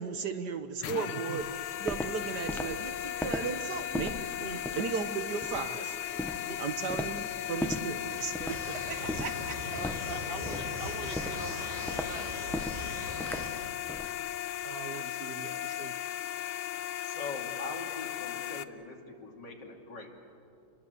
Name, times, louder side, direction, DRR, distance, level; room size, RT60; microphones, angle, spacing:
voice 1, 0.0-1.5 1.8-4.2 4.7-6.0 6.6-9.7, right 6 dB, 60° right, 9 dB, 1.5 m, -36 dB
sound 1, 0.8-18.6, left 12 dB, 80° left, 1.6 m, -37 dB
voice 2, 1.1-1.4 4.4-4.8 6.5-6.6 8.4-8.8 9.7-13.5 14.6-15.9, right 2 dB, 40° right, 3 dB, 1.0 m, -43 dB
Walk footsteps, 1.4-14.2, equal, ahead, 0.3 m, -39 dB
sound 2, 8.5-13.5, equal, 20° right, 5.2 m, -41 dB
voice 3, 17.0-20.2, left 3 dB, 60° left, 1 dB, 3.4 m, -42 dB
29.0 x 22.5 x 8.3 m, 2.7 s
omnidirectional pair, 2.2 m